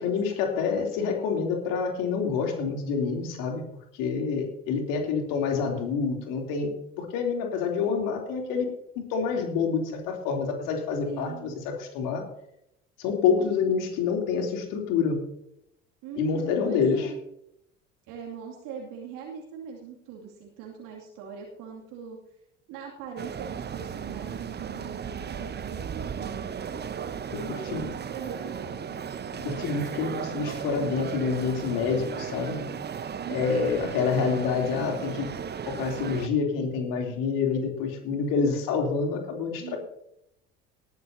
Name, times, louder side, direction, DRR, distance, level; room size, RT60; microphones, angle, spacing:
voice 1, 0.0-3.7 3.9-8.7 9.1-12.3 13.0-15.3 16.2-17.1 27.5-27.9 29.4-32.7 33.3-35.3 35.7-39.8, left 5 dB, 60° left, 2 dB, 3.2 m, -27 dB
voice 2, 11.0-11.6 13.4-13.5 16.0-17.2 18.1-22.2 22.7-26.5 27.3-28.8 33.2-33.9 39.6-39.8, right 7 dB, 55° right, -1 dB, 2.6 m, -41 dB
sound 1, 23.2-36.3, right 7 dB, 25° right, 1.0 m, -36 dB
19.5 x 11.5 x 2.8 m, 0.76 s
figure-of-eight pair, 55°, 38 cm